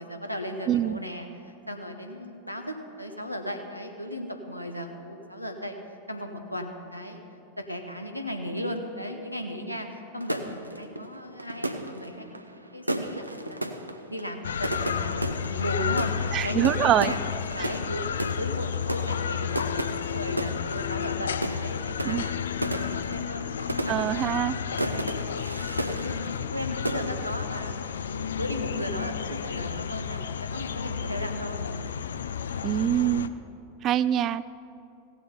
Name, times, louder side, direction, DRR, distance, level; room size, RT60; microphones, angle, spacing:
voice 1, 0.0-5.8 6.1-7.2 7.7-12.4 12.7-17.2 17.5-23.5 23.8-25.6 25.9-31.7, equal, 90° left, 4 dB, 0.9 m, -36 dB
voice 2, 0.7-1.0 16.3-17.1 22.0-22.2 23.9-24.6 32.6-33.3 33.8-34.4, right 11 dB, 30° right, 16 dB, 0.3 m, -24 dB
sound 1, 10.2-26.6 26.9-27.4, right 1 dB, 85° right, 0.6 m, -34 dB
sound 2, 14.4-33.3, left 8 dB, 65° left, 0.3 m, -32 dB
16.0 x 7.2 x 5.5 m, 2.7 s
figure-of-eight pair, 90°, 0 cm